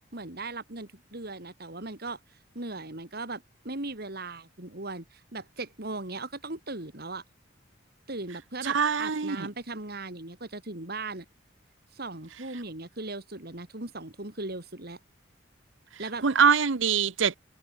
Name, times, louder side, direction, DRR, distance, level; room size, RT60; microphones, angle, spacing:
voice 1, 0.1-7.2 8.1-11.2 11.9-15.0 16.0-16.2, right 2 dB, 55° right, 3.1 m, -38 dB
voice 2, 8.6-9.5 16.2-17.4, right 6 dB, 75° right, 0.8 m, -23 dB
head